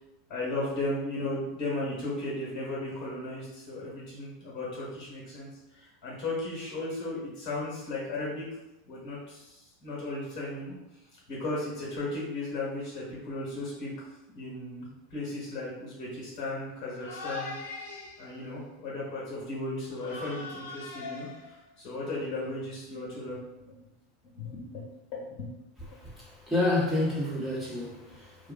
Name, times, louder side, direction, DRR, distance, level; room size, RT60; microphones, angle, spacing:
voice 1, 0.3-8.4 8.8-10.7 11.3-13.9 14.3-17.6 18.2-23.4 23.7-23.8 24.3-24.8 25.1-25.5, left 2 dB, 50° left, -6 dB, 1.3 m, -35 dB
sound 1, 17.0-18.4 19.9-21.8, left 3 dB, 75° left, 0.4 m, -41 dB
voice 2, 25.9-28.5, left 2 dB, 5° right, -7 dB, 1.2 m, -29 dB
2.8 x 2.3 x 2.5 m, 0.94 s
hypercardioid pair, 95°, 0 cm